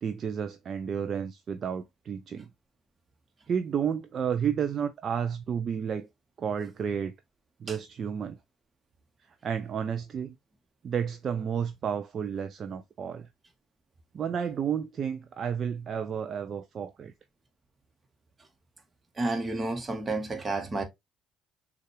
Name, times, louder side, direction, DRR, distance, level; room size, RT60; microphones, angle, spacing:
voice 1, 0.0-2.5 3.5-6.1 6.4-7.1 7.6-8.4 9.4-10.4 10.8-13.3 14.1-17.1, right 7 dB, 50° right, 0.5 m, -31 dB
voice 2, 19.2-20.8, right 2 dB, 30° right, 1.3 m, -30 dB
6.4 x 2.4 x 3.1 m
hypercardioid pair, 50°, 0 cm